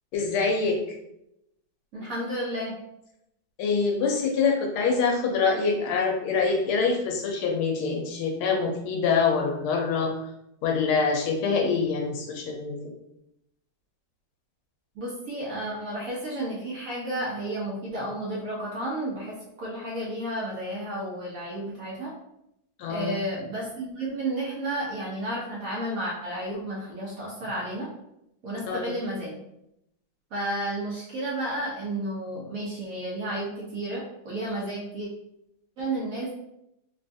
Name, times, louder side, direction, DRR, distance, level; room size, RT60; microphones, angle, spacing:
voice 1, 0.1-0.8 3.6-10.1 10.6-12.9 22.8-23.2 28.7-28.9, left 5 dB, 85° left, 1 dB, 1.5 m, -25 dB
voice 2, 1.9-2.7 14.9-22.1 22.9-27.9 28.4-29.4 30.3-35.1 35.8-36.3, right 1 dB, 65° right, -5 dB, 0.9 m, -32 dB
3.7 x 2.3 x 2.6 m, 0.82 s
omnidirectional pair, 2.3 m